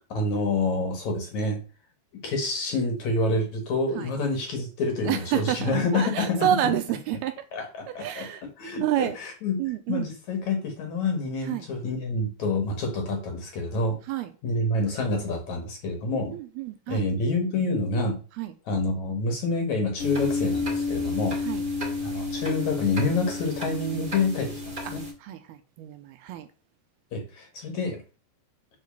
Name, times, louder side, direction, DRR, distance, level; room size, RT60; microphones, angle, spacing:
voice 1, 0.1-1.6 2.2-6.5 7.5-8.3 8.6-9.6 9.9-14.0 14.4-16.4 16.9-18.2 18.7-21.4 22.0-25.0 27.1-28.0, left 2 dB, 55° left, 2.4 m, -27 dB
voice 2, 5.1-7.4 8.0-8.4 8.8-9.2 9.6-10.1 11.5-11.7 14.1-14.3 16.3-17.0 18.4-18.5 21.4-21.6 24.8-25.0 25.2-26.5, right 12 dB, 80° right, 2.5 m, -29 dB
sound 1, 20.0-25.1, left 3 dB, 15° right, 2.1 m, -30 dB
8.3 x 4.8 x 6.8 m
omnidirectional pair, 4.8 m